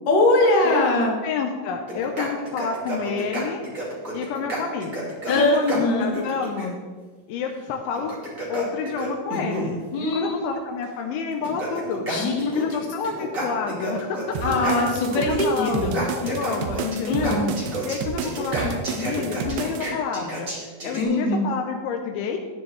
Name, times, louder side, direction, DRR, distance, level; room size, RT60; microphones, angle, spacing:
voice 1, 0.1-1.1 5.3-6.1 9.9-10.4 12.1-12.7 14.4-15.9 17.1-17.5 21.0-21.4, left 2 dB, 45° left, -3 dB, 2.7 m, -21 dB
voice 2, 1.2-3.6 4.1-6.8 7.3-8.2 8.5-9.8 10.1-12.0 12.5-14.4 15.3-17.4 17.9-20.5 20.8-22.4, left 6 dB, 80° left, 3 dB, 3.1 m, -29 dB
sound 1, 1.9-6.7 7.9-9.8 10.8-10.9 11.3-12.8 13.0-15.4 15.6-21.0, right 1 dB, 30° right, 1.5 m, -31 dB
sound 2, 14.4-19.9, right 6 dB, 80° right, 2.5 m, -31 dB
14.0 x 9.6 x 3.4 m, 1.4 s
omnidirectional pair, 5.4 m